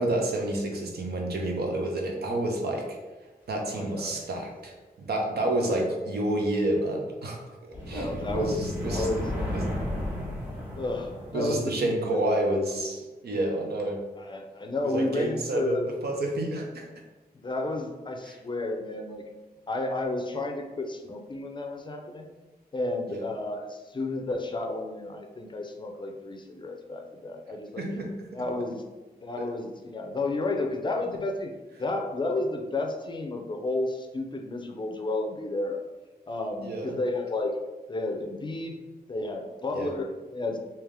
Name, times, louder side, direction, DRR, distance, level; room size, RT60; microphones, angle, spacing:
voice 1, 0.0-3.0 3.5-9.3 9.5-9.7 11.3-14.0 14.8-16.9 18.3-18.4 23.1-23.3 27.8-28.4 29.4-29.5 36.6-37.0 39.7-39.9, right 1 dB, 80° right, 1 dB, 0.7 m, -29 dB
voice 2, 3.8-4.2 5.5-5.7 7.7-9.3 10.7-12.3 14.2-15.8 17.3-19.3 19.7-22.3 22.7-27.8 28.3-28.8 29.2-31.5 31.8-35.9 36.3-37.5 37.9-38.8 39.1-40.6, left 2 dB, 30° left, 2 dB, 0.4 m, -32 dB
sound 1, 7.7-11.7, left 1 dB, 10° right, 1.4 m, -33 dB
3.4 x 2.8 x 3.5 m, 1.2 s
wide cardioid pair, 150°, 16 cm